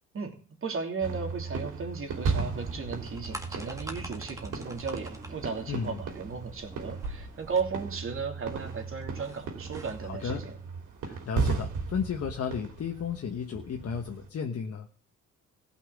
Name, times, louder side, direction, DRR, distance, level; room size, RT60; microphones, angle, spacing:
voice 1, 0.6-10.6, right 5 dB, 45° right, 3 dB, 3.0 m, -35 dB
sound 1, 1.0-14.3, right 4 dB, 80° right, 3.1 m, -36 dB
sound 2, 2.5-11.8, right 2 dB, 25° right, 2.3 m, -51 dB
sound 3, 3.0-10.3, right 1 dB, 10° right, 1.9 m, -47 dB
voice 2, 5.7-6.0 10.0-10.4 11.0-14.9, left 6 dB, 55° left, 3 dB, 1.4 m, -33 dB
15.5 x 5.9 x 8.5 m, 0.41 s
cardioid pair, 90°, 30 cm